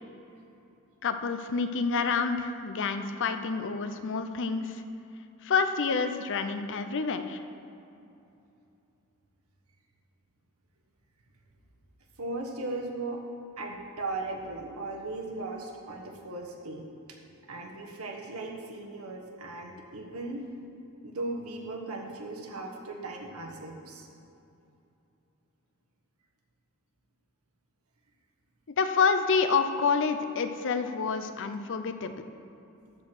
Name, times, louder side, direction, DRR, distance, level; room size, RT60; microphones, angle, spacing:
voice 1, 1.0-4.8 5.4-7.4 28.7-32.2, left 5 dB, 60° left, 9 dB, 0.6 m, -28 dB
voice 2, 12.2-13.2 13.6-16.9 17.5-20.4 21.0-24.1, right 2 dB, 85° right, 1 dB, 1.3 m, -37 dB
12.5 x 4.6 x 6.3 m, 2.8 s
head